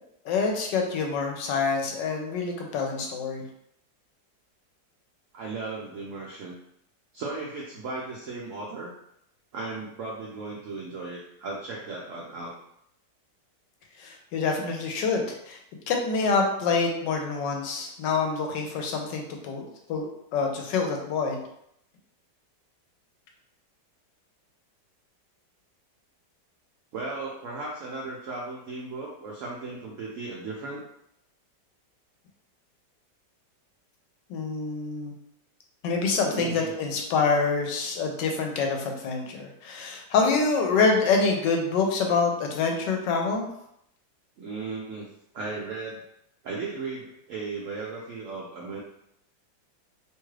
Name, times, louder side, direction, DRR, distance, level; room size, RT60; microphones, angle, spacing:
voice 1, 0.2-3.4 14.0-15.6 15.9-21.4 34.3-35.1 35.8-43.4, left 4 dB, 80° left, 2 dB, 1.2 m, -26 dB
voice 2, 5.3-6.6 7.1-8.9 9.5-12.5 26.9-30.8 36.3-36.7 44.4-45.1 45.3-46.0 46.4-48.8, right 3 dB, 75° right, -4 dB, 0.7 m, -36 dB
3.0 x 2.4 x 3.1 m, 0.75 s
omnidirectional pair, 1.9 m